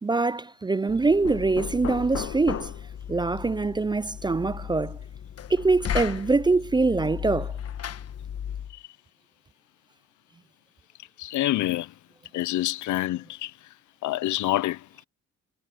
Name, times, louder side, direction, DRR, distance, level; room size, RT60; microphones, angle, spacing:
voice 1, 0.0-2.7 3.1-5.0 5.5-7.5, right 3 dB, 15° right, 0.4 m, -24 dB
Knock, 0.9-8.8, left 9 dB, 55° left, 1.3 m, -35 dB
voice 2, 11.2-11.9 12.3-13.5 14.0-14.8, left 15 dB, 75° left, 0.6 m, -26 dB
cardioid pair, 90°, 30 cm